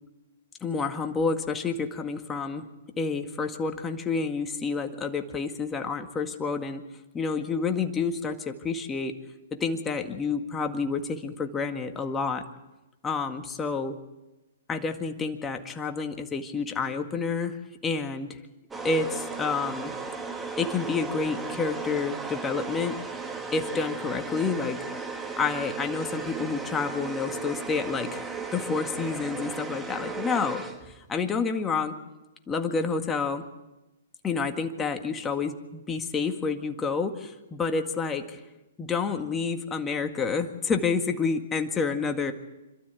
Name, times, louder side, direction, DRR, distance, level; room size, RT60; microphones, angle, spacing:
voice 1, 0.6-2.7 3.0-6.8 7.1-9.1 9.6-12.4 13.0-14.0 14.7-17.6 17.8-18.4 18.8-19.9 20.6-23.0 23.5-24.8 25.4-30.6 31.1-32.0 32.5-33.5 34.2-38.4 38.8-42.3, left 5 dB, 15° left, 5 dB, 1.9 m, -29 dB
sound 1, 18.7-31.1, right 4 dB, 10° right, 1.9 m, -36 dB
26.5 x 13.0 x 8.3 m, 1.0 s
hypercardioid pair, 125°, 0 cm